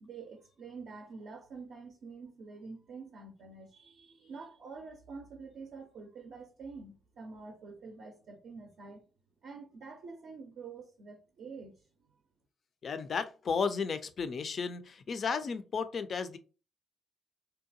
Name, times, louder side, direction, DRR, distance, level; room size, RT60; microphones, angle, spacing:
voice 1, 0.0-9.0 9.4-11.9, right 4 dB, 60° right, 0.5 m, -47 dB
voice 2, 12.8-16.4, left 5 dB, 50° left, 0.3 m, -33 dB
2.7 x 2.2 x 2.6 m
figure-of-eight pair, 40°, 0 cm